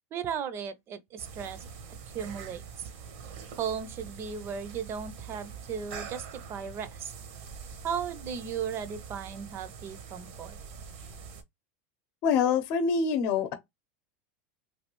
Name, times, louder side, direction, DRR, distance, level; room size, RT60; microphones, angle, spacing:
voice 1, 0.1-1.6 2.1-2.6 3.6-7.1 7.8-10.6, right 7 dB, 35° right, 0.6 m, -36 dB
sound 1, 1.2-11.4, right 6 dB, 65° right, 0.9 m, -44 dB
voice 2, 12.2-13.5, left 6 dB, 55° left, 0.7 m, -25 dB
3.3 x 2.2 x 3.0 m
supercardioid pair, 125°, 7 cm